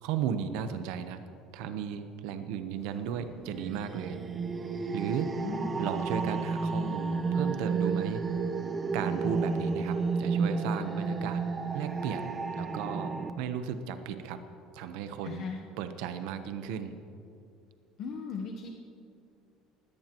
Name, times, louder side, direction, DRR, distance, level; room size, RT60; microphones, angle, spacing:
voice 1, 0.0-1.2 1.5-4.2 4.9-5.3 5.8-8.2 8.9-11.4 11.7-14.4 14.7-15.5 15.8-16.9, right 8 dB, 80° right, 9 dB, 0.9 m, -35 dB
sound 1, 3.1-13.3, right 4 dB, 20° right, 0.6 m, -32 dB
voice 2, 5.3-5.8 15.2-15.6 18.0-18.7, left 5 dB, 45° left, 2 dB, 1.0 m, -37 dB
20.5 x 16.5 x 3.0 m, 2.5 s
cardioid pair, 155°, 0 cm